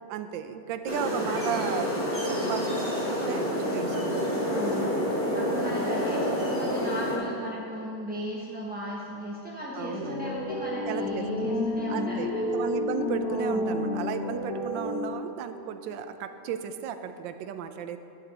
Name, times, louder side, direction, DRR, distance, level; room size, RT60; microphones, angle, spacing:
voice 1, 0.1-1.9 2.2-4.3 9.8-10.2 10.8-11.5 11.9-18.0, right 9 dB, 75° right, 9 dB, 1.2 m, -35 dB
sound 1, 0.8-7.2, equal, 5° left, 2.1 m, -28 dB
voice 2, 4.5-4.9 5.3-12.5, equal, 10° right, -5 dB, 0.5 m, -36 dB
sound 2, 9.9-15.4, left 1 dB, 80° left, 2.1 m, -30 dB
12.5 x 8.3 x 4.1 m, 2.7 s
omnidirectional pair, 2.1 m